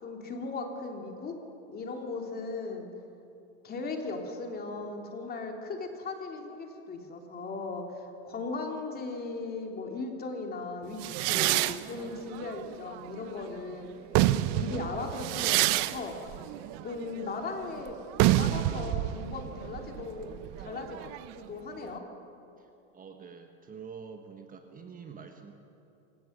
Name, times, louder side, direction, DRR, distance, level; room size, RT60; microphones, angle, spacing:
voice 1, 0.0-1.3 1.7-2.9 3.6-13.9 14.5-16.4 16.8-18.0 18.4-20.3 20.6-21.1 21.5-22.0, left 3 dB, 25° left, 2 dB, 3.2 m, -37 dB
sound 1, 11.0-13.5 13.9-21.4, right 15 dB, 50° right, 0.8 m, -29 dB
voice 2, 22.6-25.5, right 6 dB, 25° right, 5 dB, 1.5 m, -46 dB
27.0 x 17.0 x 6.7 m, 2.8 s
supercardioid pair, 125°, 34 cm